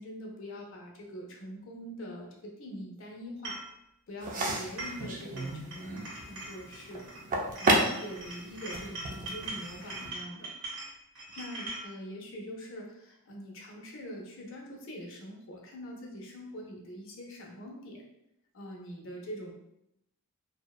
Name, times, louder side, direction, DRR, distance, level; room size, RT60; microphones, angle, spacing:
voice 1, 0.0-3.6 4.1-7.1 7.6-10.5 11.3-18.1 18.5-19.5, equal, 60° left, 0 dB, 0.5 m, -43 dB
sound 1, 3.4-3.7 4.5-5.1 5.4-7.2 7.5-11.8, right 2 dB, 75° right, 0.9 m, -41 dB
sound 2, 4.2-10.1, right 2 dB, 35° right, 0.3 m, -33 dB
2.7 x 2.0 x 2.2 m, 0.81 s
head